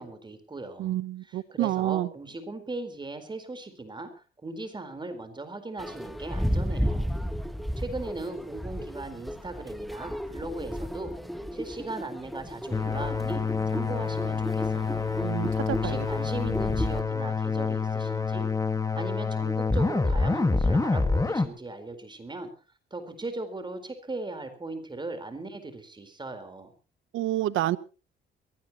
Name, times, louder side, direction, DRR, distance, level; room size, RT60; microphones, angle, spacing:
voice 1, 0.0-0.9 1.2-7.1 7.8-11.1 11.5-13.5 13.7-15.1 15.4-18.5 18.9-22.5 22.9-26.7, right 2 dB, 25° right, 8 dB, 4.3 m, -38 dB
voice 2, 0.8-2.1 15.2-16.0 27.1-27.8, right 14 dB, 85° right, 17 dB, 0.9 m, -28 dB
sound 1, 5.8-17.0, equal, ahead, 1.3 m, -33 dB
sound 2, 12.7-21.5, left 4 dB, 15° left, 1.8 m, -27 dB
22.5 x 17.5 x 3.0 m, 0.33 s
cardioid pair, 90°, 20 cm